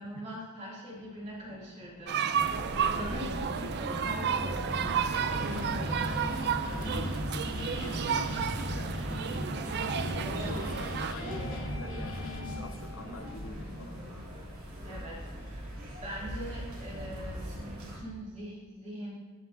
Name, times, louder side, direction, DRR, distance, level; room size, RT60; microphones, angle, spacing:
voice 1, 0.0-5.5 14.8-19.1, equal, 30° right, -6 dB, 2.7 m, -43 dB
sound 1, 0.9-12.6, left 1 dB, 40° left, 2.0 m, -39 dB
sound 2, 2.1-11.1, right 7 dB, 50° right, 0.4 m, -32 dB
sound 3, 2.3-18.0, equal, 75° right, 2.8 m, -40 dB
voice 2, 2.8-3.1 6.6-9.0 9.5-14.0 14.9-15.0, left 2 dB, 65° left, 7 dB, 0.8 m, -46 dB
15.0 x 5.4 x 2.7 m, 1.3 s
head